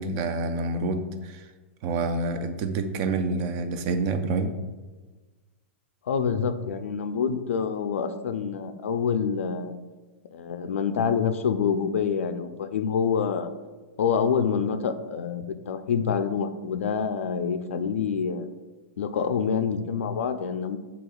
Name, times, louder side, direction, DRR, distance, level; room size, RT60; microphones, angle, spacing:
voice 1, 0.0-1.5 1.8-4.6, right 3 dB, 40° right, 8 dB, 0.4 m, -28 dB
voice 2, 6.1-9.7 10.3-13.5 14.0-18.5 19.0-20.8, left 6 dB, 85° left, 9 dB, 0.4 m, -26 dB
7.7 x 2.8 x 2.3 m, 1.3 s
hypercardioid pair, 150°, 7 cm